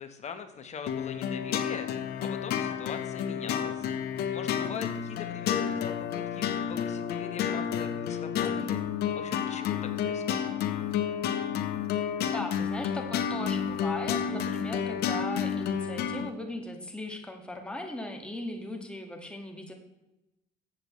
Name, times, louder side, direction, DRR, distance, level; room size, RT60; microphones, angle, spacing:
voice 1, 0.0-3.9 4.3-8.8 9.1-10.5, left 6 dB, 40° left, 8 dB, 1.2 m, -42 dB
sound 1, 0.9-16.3, left 8 dB, 65° left, 1.0 m, -30 dB
voice 2, 12.3-19.7, left 1 dB, 5° left, 2 dB, 1.8 m, -38 dB
12.5 x 8.4 x 3.1 m, 0.95 s
supercardioid pair, 90°, 17 cm